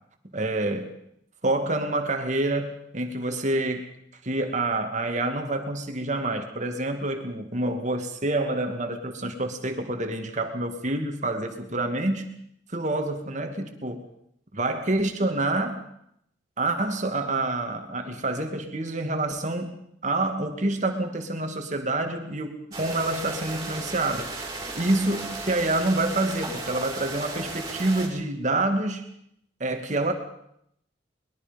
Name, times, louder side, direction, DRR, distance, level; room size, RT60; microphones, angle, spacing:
voice 1, 0.3-0.9 1.4-3.9 4.2-12.3 12.7-14.0 14.5-15.8 16.6-24.4 24.7-29.0 29.6-30.1, right 2 dB, 40° right, 5 dB, 2.5 m, -27 dB
sound 1, 22.7-28.1, right 3 dB, 20° right, 5.1 m, -35 dB
23.0 x 21.5 x 5.4 m, 0.73 s
head